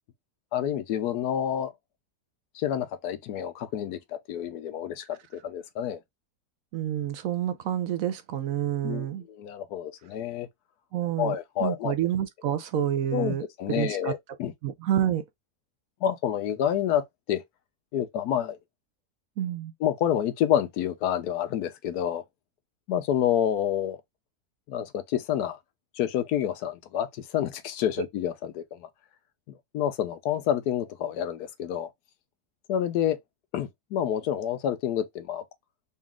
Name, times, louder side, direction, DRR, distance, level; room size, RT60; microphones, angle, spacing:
voice 1, 0.5-1.7 2.5-6.0 8.8-10.5 11.2-11.9 13.1-14.5 16.0-17.4 17.9-18.6 19.8-22.2 22.9-24.0 24.7-25.6 25.9-28.9 29.7-31.9 32.7-33.2 33.5-35.4, left 10 dB, 80° left, 1.2 m, -28 dB
voice 2, 6.7-9.2 10.9-14.1 14.6-15.2 19.4-19.7, right 10 dB, 70° right, 0.9 m, -28 dB
4.1 x 2.4 x 3.5 m
omnidirectional pair, 1.7 m